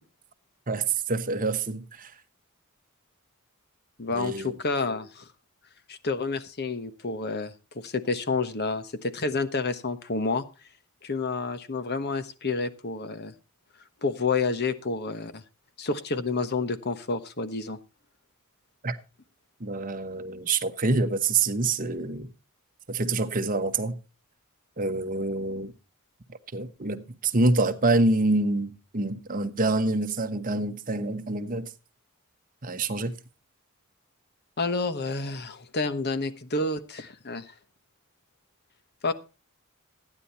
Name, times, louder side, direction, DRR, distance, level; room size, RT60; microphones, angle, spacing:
voice 1, 0.7-2.1 4.1-4.5 18.8-19.0 19.6-22.3 22.9-24.0 24.8-25.7 26.5-31.7 32.6-33.1, right 2 dB, 40° right, 1.0 m, -26 dB
voice 2, 4.0-5.3 5.9-10.4 11.0-13.3 14.0-15.4 15.8-17.8 34.6-37.5 39.0-39.1, left 3 dB, 50° left, 1.1 m, -29 dB
14.5 x 10.0 x 4.2 m
head